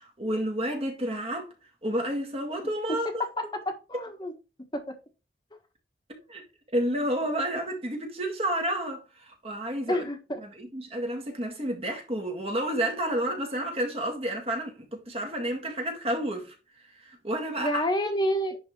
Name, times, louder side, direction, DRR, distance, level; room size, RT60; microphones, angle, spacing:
voice 1, 0.0-1.5 1.8-3.2 6.3-6.4 6.7-10.0 10.4-16.5 17.0-17.8, right 1 dB, 35° right, 2.0 m, -30 dB
voice 2, 3.0-4.3 4.7-4.8 9.9-10.4 17.6-18.6, equal, 25° left, 1.4 m, -29 dB
10.5 x 3.8 x 3.2 m
head